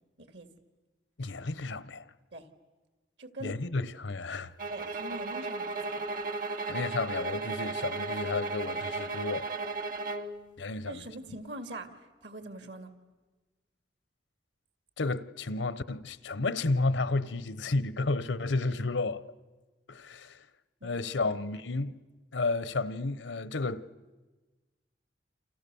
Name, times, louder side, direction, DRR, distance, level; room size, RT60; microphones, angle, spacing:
voice 1, 0.2-0.5 2.3-2.5 3.2-3.6 4.7-6.0 10.9-12.9 20.8-20.9 21.2-21.3, right 1 dB, 75° right, 2.3 m, -43 dB
voice 2, 1.2-2.0 3.4-4.5 6.5-9.5 10.6-11.0 15.0-19.2 19.9-20.4 20.8-22.0 22.3-23.9, left 3 dB, 90° left, 0.9 m, -32 dB
sound 1, 4.6-10.3, right 3 dB, 50° right, 1.3 m, -35 dB
29.0 x 28.0 x 7.0 m
head